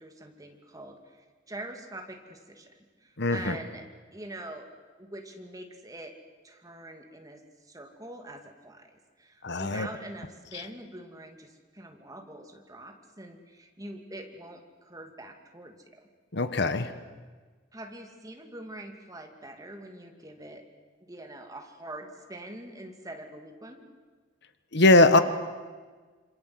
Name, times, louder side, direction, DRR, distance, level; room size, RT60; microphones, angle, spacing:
voice 1, 0.0-3.8 4.1-4.7 5.0-6.1 6.4-15.9 17.7-20.6 21.0-23.9, right 1 dB, 20° right, 4 dB, 2.6 m, -44 dB
voice 2, 3.2-3.6 9.4-9.9 10.5-10.6 16.3-16.9 24.7-25.2, left 2 dB, 60° left, 11 dB, 1.4 m, -21 dB
27.0 x 26.0 x 8.0 m, 1.4 s
head